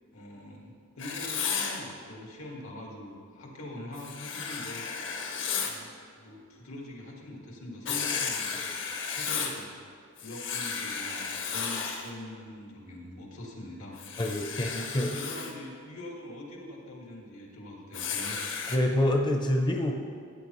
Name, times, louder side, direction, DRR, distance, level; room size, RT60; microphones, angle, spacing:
voice 1, 0.1-4.8 5.6-8.7 9.1-9.7 10.2-14.0 15.0-18.4, left 1 dB, 85° left, -2 dB, 1.9 m, -43 dB
Writing, 1.0-1.8 4.0-5.8 7.9-9.6 10.2-12.1 14.0-15.5 17.9-18.8, left 6 dB, 60° left, 1.0 m, -33 dB
voice 2, 14.2-15.2 18.7-19.9, left 1 dB, 20° left, 2 dB, 0.5 m, -27 dB
13.5 x 8.7 x 3.0 m, 2.3 s
head